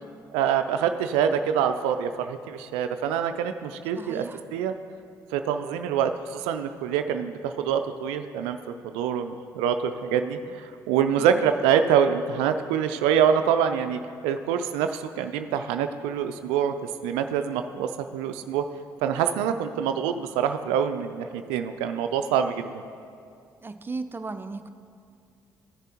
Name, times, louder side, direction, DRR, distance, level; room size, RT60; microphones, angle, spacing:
voice 1, 0.3-4.2 4.5-4.7 5.3-8.6 8.9-16.7 17.0-18.7 19.0-22.8, right 8 dB, 80° right, 8 dB, 0.4 m, -25 dB
voice 2, 3.9-4.4 11.2-11.4 23.6-24.7, right 3 dB, 20° right, 9 dB, 0.5 m, -36 dB
14.5 x 6.8 x 2.8 m, 2.3 s
hypercardioid pair, 50°, 10 cm